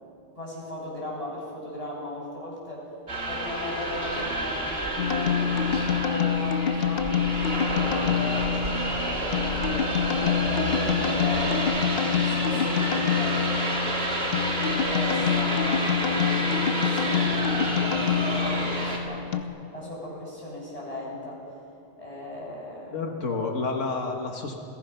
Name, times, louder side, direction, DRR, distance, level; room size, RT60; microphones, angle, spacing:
voice 1, 0.4-2.9 3.3-9.7 10.0-11.8 12.2-19.2 19.7-21.4 22.0-23.4, left 1 dB, 30° left, -5 dB, 7.1 m, -37 dB
sound 1, 3.1-19.0, right 1 dB, 55° right, 3.0 m, -30 dB
sound 2, 5.0-19.4, left 8 dB, 55° left, 1.1 m, -26 dB
voice 2, 22.9-24.6, left 4 dB, 90° left, 2 dB, 1.8 m, -30 dB
29.0 x 18.5 x 5.7 m, 2.6 s
omnidirectional pair, 1.2 m